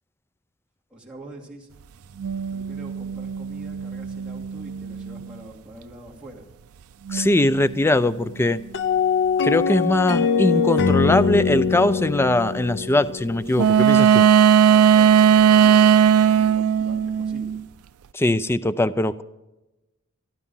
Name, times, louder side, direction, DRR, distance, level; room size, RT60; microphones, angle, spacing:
voice 1, 0.9-6.5 14.6-17.6, right 1 dB, 5° right, -5 dB, 2.5 m, -44 dB
sound 1, 2.2-5.3 7.1-7.8 13.6-17.6, right 8 dB, 80° right, 0.4 m, -18 dB
voice 2, 7.1-8.6 9.4-14.3 18.1-19.2, left 1 dB, 10° left, 14 dB, 0.4 m, -21 dB
sound 2, 8.7-13.9, left 6 dB, 55° left, 0.6 m, -22 dB
13.5 x 12.5 x 5.5 m, 1.0 s
head